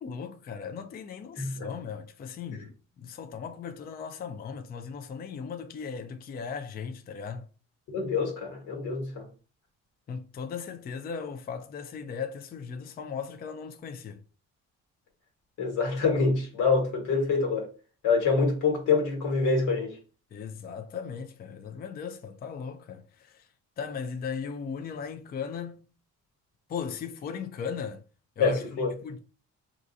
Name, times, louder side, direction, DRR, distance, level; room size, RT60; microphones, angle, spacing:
voice 1, 0.0-7.5 10.1-14.2 20.3-23.5 23.8-25.9 26.7-28.0 28.4-29.2, left 6 dB, 30° left, 0.4 m, -37 dB
voice 2, 1.4-1.7 2.5-2.6 7.9-9.2 15.6-17.7 18.0-20.0 28.4-28.9, left 4 dB, 85° left, 1.3 m, -26 dB
3.7 x 2.4 x 2.6 m
cardioid pair, 90°, 30 cm